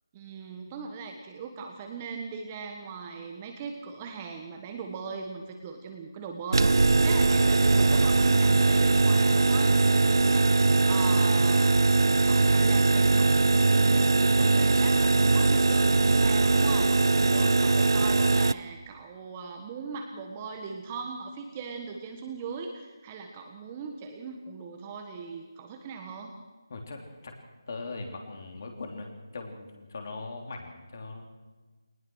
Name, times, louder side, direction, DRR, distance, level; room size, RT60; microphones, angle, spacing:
voice 1, 0.1-11.7 12.0-26.4, right 5 dB, 15° right, 3 dB, 1.4 m, -39 dB
sound 1, 6.5-18.5, right 3 dB, 65° right, 0.6 m, -21 dB
voice 2, 17.2-17.5 26.7-27.3 27.7-31.3, left 3 dB, 40° left, 3 dB, 3.4 m, -40 dB
21.5 x 19.5 x 6.3 m, 1.3 s
figure-of-eight pair, 170°, 2 cm